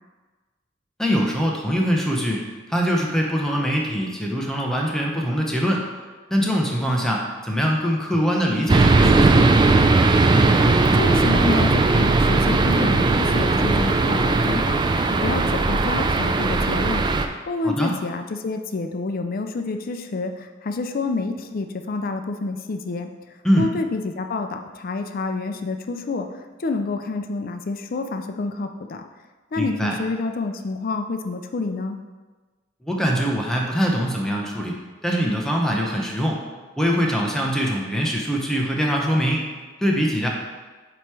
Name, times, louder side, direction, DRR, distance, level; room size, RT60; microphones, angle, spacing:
voice 1, 1.0-5.8 6.3-9.5 17.6-17.9 23.4-23.7 29.6-29.9 32.8-34.7 35.0-36.4 36.8-39.4 39.8-40.3, equal, 5° left, -1 dB, 0.7 m, -23 dB
sound 1, 8.7-17.3, right 3 dB, 25° right, 0.3 m, -18 dB
voice 2, 10.3-23.1 23.6-29.1 29.5-32.0, left 3 dB, 50° left, 6 dB, 0.4 m, -28 dB
7.7 x 3.0 x 4.7 m, 1.3 s
head